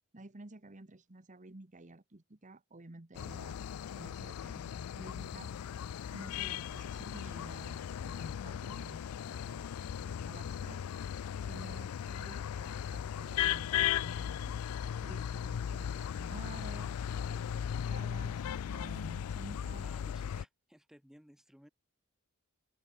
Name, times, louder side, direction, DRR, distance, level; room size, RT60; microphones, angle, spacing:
voice 1, 0.1-3.6 3.9-5.5 6.1-10.8 11.4-14.6 15.0-16.9 17.3-19.9, right 2 dB, 35° right, 1.3 m, -51 dB
sound 1, 3.1-20.4, left 9 dB, 75° left, 0.4 m, -37 dB
voice 2, 19.8-21.7, equal, ahead, 1.4 m, -58 dB
open air
head